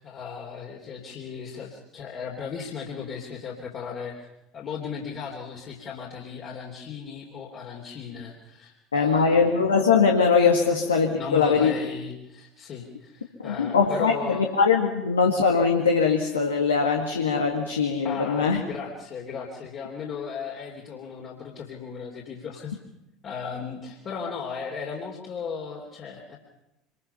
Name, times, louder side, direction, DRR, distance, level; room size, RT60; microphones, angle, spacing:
voice 1, 0.0-4.3 4.5-9.5 11.1-14.4 18.0-22.8 23.2-26.4, left 6 dB, 40° left, -2 dB, 3.2 m, -36 dB
voice 2, 8.9-11.7 13.4-18.6, left 5 dB, 80° left, 1 dB, 1.8 m, -21 dB
25.5 x 22.0 x 5.7 m, 0.92 s
figure-of-eight pair, 70°, 0 cm